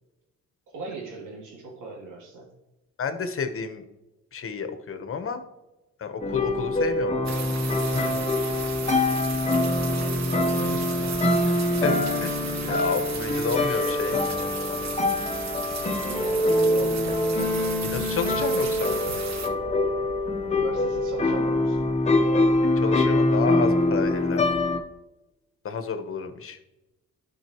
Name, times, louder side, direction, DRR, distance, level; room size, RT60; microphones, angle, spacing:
voice 1, 0.7-2.5 9.4-11.9 16.0-17.4 20.3-21.8, right 4 dB, 90° right, -3 dB, 2.9 m, -39 dB
voice 2, 3.0-3.8 4.3-5.4 6.0-7.1 7.9-8.2 11.8-12.0 12.2-12.3 12.7-14.2 17.8-18.9 22.8-24.4 25.6-26.6, left 5 dB, 45° left, 8 dB, 1.1 m, -30 dB
sound 1, 6.2-24.8, left 2 dB, 20° left, 0.9 m, -24 dB
sound 2, 7.2-19.5, right 6 dB, 60° right, 1.3 m, -36 dB
11.5 x 5.5 x 3.0 m, 1.0 s
cardioid pair, 90°, 30 cm